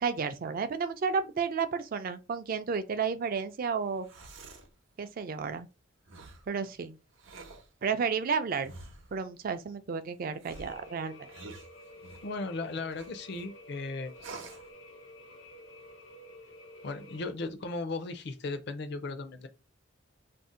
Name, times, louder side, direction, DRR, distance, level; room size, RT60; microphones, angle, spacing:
voice 1, 0.0-4.1 5.0-5.7 6.5-7.0 7.8-8.7 9.1-11.2, right 5 dB, 50° right, 0.4 m, -32 dB
sound 1, 3.9-4.7 6.1-6.5 7.1-7.7 8.6-9.2 10.4-12.3 12.9-13.5 14.2-14.7, right 3 dB, 90° right, 0.7 m, -48 dB
sound 2, 10.5-17.3, left 1 dB, 85° left, 0.8 m, -51 dB
voice 2, 12.2-14.2 16.8-19.5, left 3 dB, 60° left, 0.5 m, -36 dB
2.6 x 2.1 x 3.7 m
head